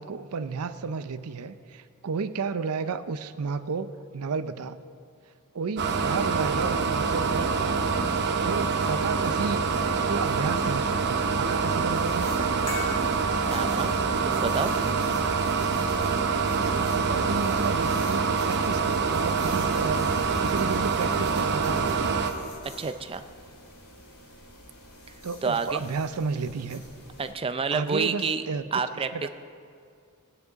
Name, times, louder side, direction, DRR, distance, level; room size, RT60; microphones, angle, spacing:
voice 1, 0.0-4.8 5.5-7.8 8.2-9.7 10.1-12.7 16.6-22.3 25.2-26.8 27.7-28.8 29.1-29.3, right 5 dB, 80° right, 12 dB, 0.5 m, -33 dB
sound 1, 5.8-22.3, right 5 dB, 50° right, 0.8 m, -25 dB
sound 2, 11.9-27.3, left 1 dB, 70° left, 2.6 m, -47 dB
sound 3, 12.7-19.1 19.3-19.5, left 4 dB, 25° left, 3.0 m, -44 dB
voice 2, 13.5-14.0 14.2-14.8 22.6-23.2 25.4-25.8 27.2-28.4 28.7-29.1, right 4 dB, 25° right, 9 dB, 0.5 m, -29 dB
19.5 x 9.5 x 4.0 m, 2.3 s
head